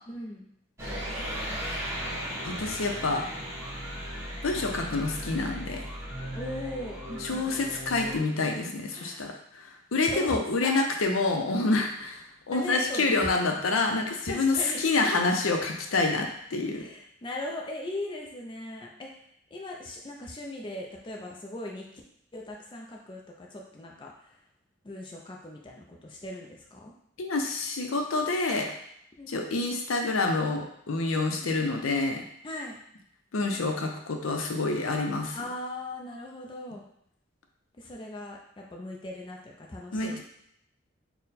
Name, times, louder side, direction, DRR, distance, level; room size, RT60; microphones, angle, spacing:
voice 1, 0.1-0.5 6.3-7.5 8.9-9.2 10.0-10.8 12.5-13.3 14.3-14.8 16.7-22.0 22.3-24.4 24.8-26.9 29.2-29.3 32.4-32.8 35.3-36.8 37.8-40.2, left 1 dB, 25° left, -1 dB, 0.4 m, -39 dB
sound 1, 0.8-8.2, equal, 10° right, 1.0 m, -36 dB
voice 2, 2.4-3.3 4.4-5.8 7.2-16.9 27.2-28.7 29.3-32.2 33.3-35.4 39.9-40.2, left 3 dB, 85° left, 3 dB, 0.6 m, -27 dB
4.2 x 2.2 x 4.0 m, 0.73 s
head